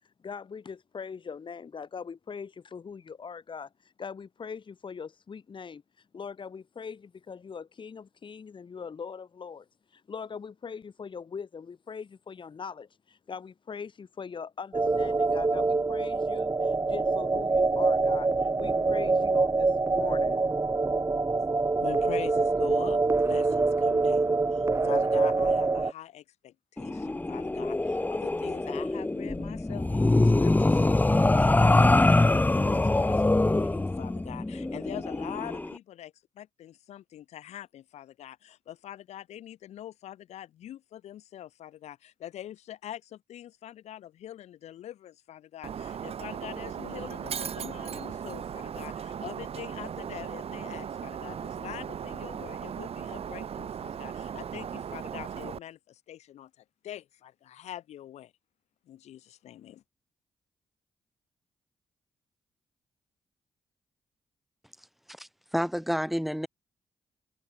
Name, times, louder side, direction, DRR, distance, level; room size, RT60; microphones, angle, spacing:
voice 1, 0.2-5.8 6.1-9.7 9.9-20.4, left 6 dB, 45° left, 1.7 m, -41 dB
sound 1, 14.7-25.9, right 3 dB, 25° right, 1.5 m, -25 dB
voice 2, 21.8-58.3 58.9-59.8, left 12 dB, 80° left, 3.8 m, -44 dB
sound 2, 26.8-35.7, left 2 dB, 15° left, 0.8 m, -24 dB
Shatter, 45.6-55.6, right 8 dB, 65° right, 2.1 m, -37 dB
voice 3, 65.2-66.5, equal, ahead, 2.7 m, -30 dB
open air
supercardioid pair, 55°, 11 cm